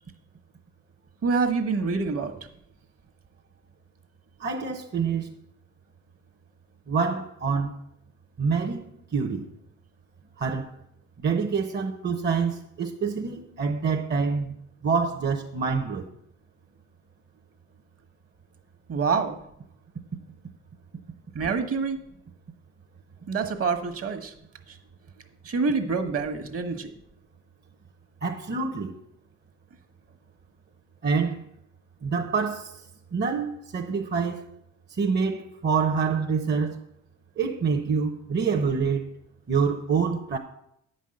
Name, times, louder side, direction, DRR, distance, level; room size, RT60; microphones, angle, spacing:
voice 1, 1.2-2.3 18.9-19.4 21.3-22.0 23.3-24.3 24.7-24.8 25.4-26.9, right 4 dB, 50° right, 1.4 m, -26 dB
voice 2, 4.4-5.3 6.9-7.8 8.4-9.4 10.4-10.7 11.2-14.6 14.8-16.1 28.2-28.9 31.0-31.4 32.0-32.8 33.1-34.4 35.0-36.8 37.4-39.0 39.5-40.4, right 5 dB, 35° right, 0.9 m, -26 dB
9.3 x 5.5 x 7.7 m
cardioid pair, 90°, 30 cm